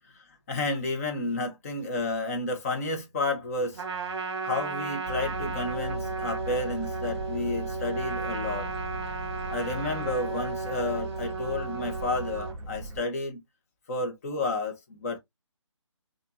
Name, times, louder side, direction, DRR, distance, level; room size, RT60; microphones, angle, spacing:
voice 1, 0.1-3.8 4.4-8.7 9.5-13.4 13.9-15.2, left 2 dB, 30° left, 1.0 m, -31 dB
Trumpet, 3.7-12.5, right 4 dB, 55° right, 0.9 m, -34 dB
sound 1, 5.0-13.0, right 1 dB, 30° right, 1.6 m, -38 dB
4.4 x 2.6 x 2.6 m
figure-of-eight pair, 155°, 16 cm